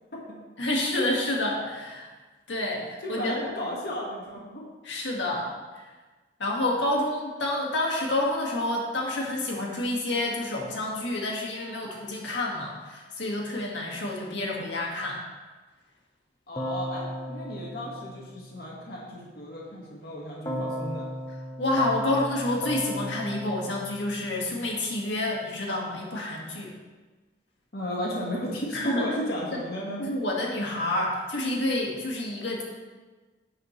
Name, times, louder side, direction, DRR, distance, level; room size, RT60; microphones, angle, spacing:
voice 1, 0.6-2.1 2.5-3.4 4.8-5.8 6.4-15.2 21.6-26.7 28.7-29.0 29.5-29.6 30.0-32.6, left 1 dB, 80° left, -2 dB, 2.0 m, -29 dB
voice 2, 3.0-4.6 16.5-21.1 27.7-30.1, left 1 dB, 60° left, -3 dB, 1.8 m, -34 dB
Keyboard (musical), 16.6-18.9 20.5-24.7, equal, 20° left, 1.0 m, -36 dB
11.0 x 9.7 x 3.3 m, 1.3 s
head